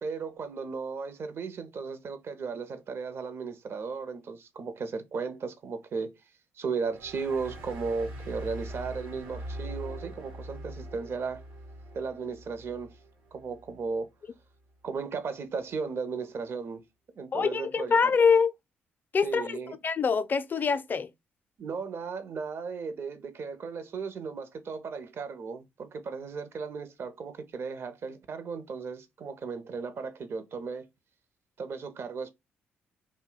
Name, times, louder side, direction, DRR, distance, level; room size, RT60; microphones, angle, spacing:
voice 1, 0.0-6.1 6.6-11.4 11.9-12.9 13.3-14.1 14.8-16.8 17.1-17.9 19.2-19.8 21.6-30.9 31.6-32.3, right 5 dB, 55° right, 0.6 m, -35 dB
sound 1, 6.9-14.0, right 1 dB, 80° right, 1.0 m, -42 dB
voice 2, 17.3-18.5 19.1-19.6 19.8-21.1, left 5 dB, 40° left, 0.4 m, -24 dB
2.6 x 2.1 x 3.8 m
hypercardioid pair, 50°, 5 cm